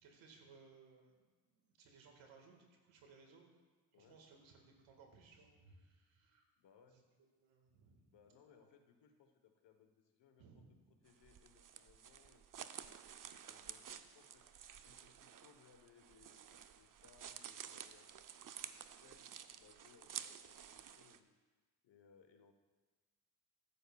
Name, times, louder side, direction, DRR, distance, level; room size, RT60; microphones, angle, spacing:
voice 1, 0.0-3.5 3.9-6.5 6.9-8.0 8.6-8.7 10.4-11.0, right 4 dB, 85° right, 2 dB, 1.9 m, -63 dB
voice 2, 6.6-7.0 8.1-21.3 21.8-22.5, left 6 dB, 70° left, 6 dB, 1.2 m, -68 dB
sound 1, 11.1-21.2, right 9 dB, 45° right, 0.6 m, -52 dB
14.0 x 11.5 x 2.3 m, 1.3 s
supercardioid pair, 55°, 45 cm